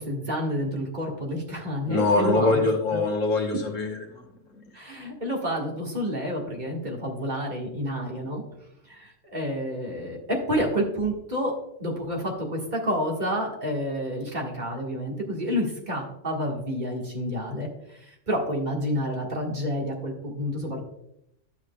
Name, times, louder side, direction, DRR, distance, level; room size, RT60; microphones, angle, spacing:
voice 1, 0.0-2.6 2.9-3.0 4.7-8.4 8.8-11.5 11.8-20.8, equal, 35° right, -1 dB, 1.8 m, -29 dB
voice 2, 1.9-4.2 4.6-4.7, left 3 dB, 80° left, 2 dB, 1.7 m, -24 dB
12.0 x 7.6 x 2.3 m, 0.80 s
omnidirectional pair, 1.3 m